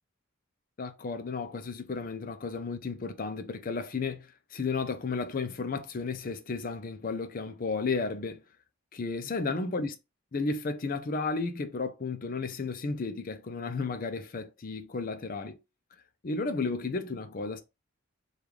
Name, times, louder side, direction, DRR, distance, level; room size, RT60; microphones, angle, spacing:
voice 1, 0.8-8.4 8.9-9.9 10.3-15.6 16.2-17.6, left 4 dB, 40° left, 0.5 m, -33 dB
5.2 x 2.4 x 3.1 m
head